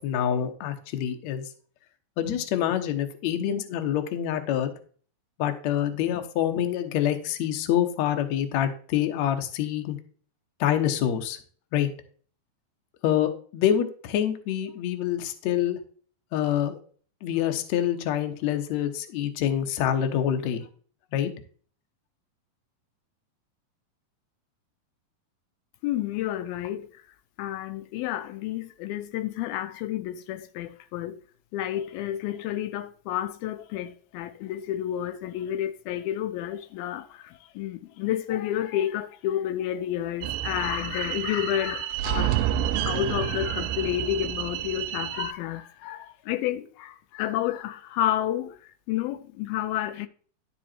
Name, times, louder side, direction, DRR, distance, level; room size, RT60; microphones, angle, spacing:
voice 1, 0.0-1.5 2.2-4.7 5.4-10.0 10.6-11.4 11.7-11.9 13.0-15.8 16.3-16.8 17.2-20.7 21.1-21.3, left 10 dB, 65° left, 1.9 m, -26 dB
voice 2, 25.8-26.9 27.4-31.2 31.5-42.4 42.9-48.6 48.9-50.1, left 12 dB, 80° left, 2.4 m, -30 dB
sound 1, 40.2-45.3, right 12 dB, 80° right, 2.0 m, -29 dB
11.5 x 5.0 x 4.4 m
omnidirectional pair, 4.4 m